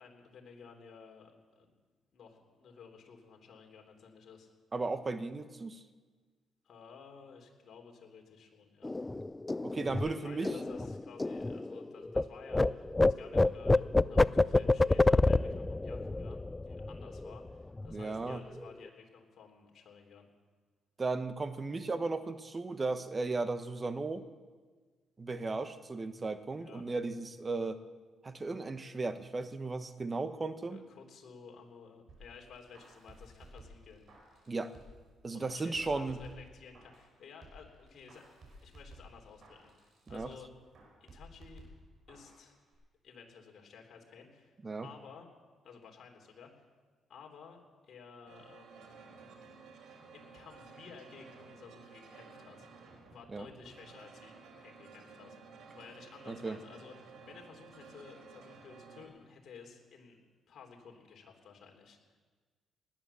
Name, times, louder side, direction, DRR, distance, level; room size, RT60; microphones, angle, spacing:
voice 1, 0.0-1.7 2.1-4.5 6.6-8.9 9.9-20.3 26.6-26.8 30.7-34.1 35.3-38.2 38.6-40.5 41.0-41.6 42.1-42.5 43.0-44.5 44.8-45.3 45.6-46.7 47.1-49.1 50.1-52.7 53.1-55.4 55.7-60.2 60.5-62.2, left 6 dB, 60° left, 2 dB, 3.2 m, -54 dB
voice 2, 4.7-5.8 9.6-10.5 17.9-18.4 21.0-24.2 25.2-27.8 28.2-30.8 34.5-34.7 35.2-36.2 40.1-40.3 44.6-44.9 53.3-53.5 56.3-56.6, right 3 dB, 30° right, 10 dB, 1.2 m, -35 dB
sound 1, 8.8-12.2 12.5-17.5 17.8-18.0 18.3-18.9, left 2 dB, 15° left, 0.4 m, -28 dB
sound 2, 32.1-35.1 35.4-37.1 37.4-40.4 40.7-42.4 42.7-42.8, right 1 dB, 55° right, 6.3 m, -55 dB
sound 3, 48.3-59.1, right 4 dB, 85° right, 3.1 m, -54 dB
19.5 x 10.5 x 7.0 m, 1.4 s
cardioid pair, 90°, 0 cm